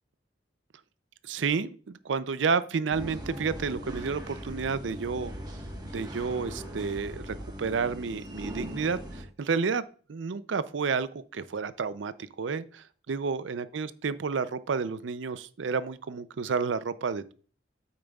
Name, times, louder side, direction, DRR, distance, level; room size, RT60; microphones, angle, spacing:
voice 1, 1.2-5.3 5.9-17.3, right 5 dB, 80° right, 15 dB, 0.5 m, -31 dB
sound 1, 2.9-9.2, equal, 20° right, 1.3 m, -40 dB
8.9 x 8.6 x 2.4 m, 0.41 s
head